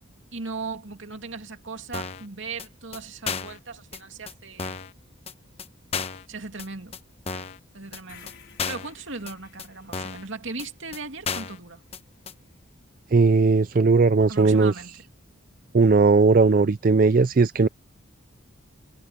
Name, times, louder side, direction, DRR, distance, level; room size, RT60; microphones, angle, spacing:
voice 1, 0.3-4.8 6.3-7.0 7.7-8.3 8.7-11.8 14.3-15.0, right 3 dB, 65° right, 2.6 m, -37 dB
sound 1, 1.9-2.3 2.6-2.7 2.9-3.0 3.3-3.6 3.9-4.0 4.3-4.4 4.6-4.9 5.3-5.4 5.6-5.7 5.9-6.2 6.6-6.7 6.9-7.0 7.3-7.6 7.9-8.0 8.3-8.4 8.6-8.9 9.3-9.4 9.6-9.7 9.9-10.3 10.6-10.7 10.9-11.0 11.2-11.6 11.9-12.0 12.3-12.4, left 5 dB, 30° left, 1.1 m, -32 dB
sound 2, 8.1-12.2, left 6 dB, 60° left, 4.8 m, -54 dB
voice 2, 13.1-14.7 15.7-17.7, right 4 dB, 40° right, 0.4 m, -18 dB
head